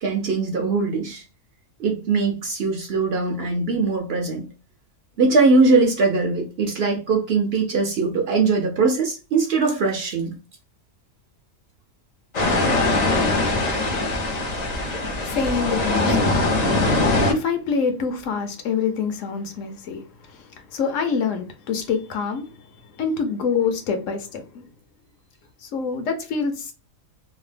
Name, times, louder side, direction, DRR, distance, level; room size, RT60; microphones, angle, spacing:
voice 1, 0.0-1.2 1.8-4.5 5.2-10.3, right 4 dB, 60° right, 0.7 m, -21 dB
sound 1, 12.3-17.3, left 2 dB, 50° left, 0.5 m, -21 dB
voice 2, 15.2-16.3 17.3-20.0 20.3-22.4 23.0-24.6 25.6-26.7, left 5 dB, 70° left, 0.9 m, -26 dB
2.8 x 2.0 x 3.2 m
omnidirectional pair, 1.4 m